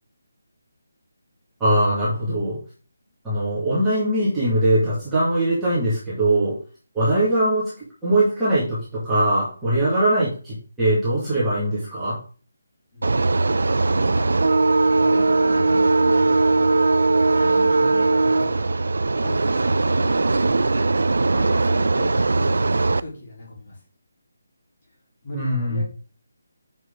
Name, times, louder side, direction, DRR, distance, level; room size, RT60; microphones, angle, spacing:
voice 1, 1.6-2.6 3.2-6.6 6.9-7.7 8.0-12.2 25.3-25.8, right 1 dB, 5° right, -12 dB, 2.2 m, -21 dB
voice 2, 12.9-14.4 15.0-16.7 17.3-18.8 19.2-20.9 21.2-23.8 25.2-25.8, left 1 dB, 35° left, -4 dB, 4.1 m, -37 dB
sound 1, 13.0-23.0, right 3 dB, 75° right, 0.4 m, -19 dB
7.8 x 6.0 x 3.9 m, 0.38 s
hypercardioid pair, 180°, 0 cm